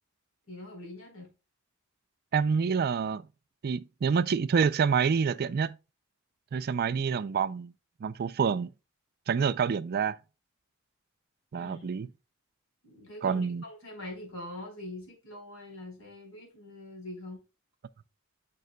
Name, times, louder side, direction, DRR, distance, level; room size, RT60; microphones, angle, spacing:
voice 1, 0.5-1.3 11.5-11.9 12.8-17.4, left 1 dB, 80° left, 4.3 m, -43 dB
voice 2, 2.3-3.3 3.6-5.8 6.5-7.7 8.0-8.7 9.3-10.1 11.5-12.1 13.2-13.6, right 6 dB, 45° right, 0.4 m, -27 dB
9.2 x 6.0 x 2.2 m
head